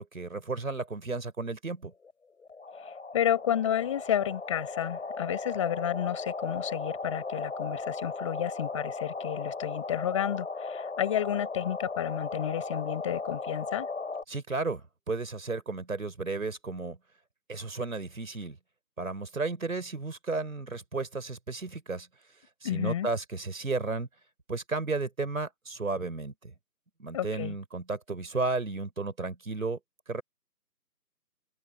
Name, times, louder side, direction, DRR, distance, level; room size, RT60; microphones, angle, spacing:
voice 1, 0.0-1.9 14.3-17.0 17.5-18.6 19.0-22.1 22.6-24.1 24.5-26.5 27.0-29.8 30.1-30.2, right 3 dB, 55° right, 4.7 m, -33 dB
sound 1, 2.0-2.1 2.4-14.2, left 3 dB, 45° left, 6.7 m, -37 dB
voice 2, 2.8-13.9 22.6-23.1 27.1-27.5, left 10 dB, 20° left, 5.7 m, -31 dB
open air
figure-of-eight pair, 160°, 49 cm